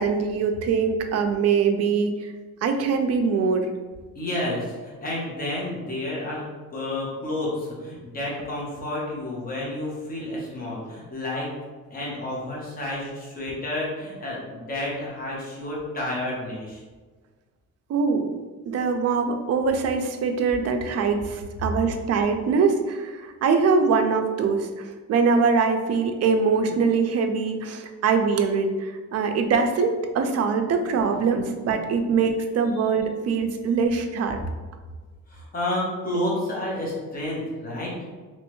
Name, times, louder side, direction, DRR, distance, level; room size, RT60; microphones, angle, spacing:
voice 1, 0.0-2.3 2.6-3.7 17.9-18.3 18.7-34.4, right 5 dB, 50° right, 5 dB, 0.4 m, -23 dB
voice 2, 4.1-11.5 11.9-16.8 31.8-31.9 35.3-37.9, left 1 dB, 25° left, -5 dB, 1.0 m, -30 dB
3.1 x 3.0 x 3.0 m, 1.3 s
cardioid pair, 150°, 32 cm